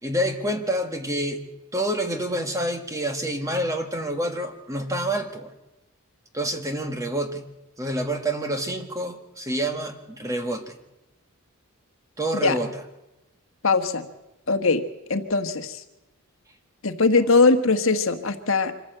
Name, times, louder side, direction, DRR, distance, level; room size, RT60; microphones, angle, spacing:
voice 1, 0.0-1.4 1.7-5.5 6.3-7.4 7.8-10.7 12.2-12.8, right 1 dB, 15° right, 6 dB, 1.6 m, -27 dB
voice 2, 13.6-14.1 14.5-14.8 15.1-15.8 16.8-18.8, left 3 dB, 60° left, 7 dB, 1.4 m, -21 dB
25.0 x 14.5 x 7.9 m, 0.98 s
head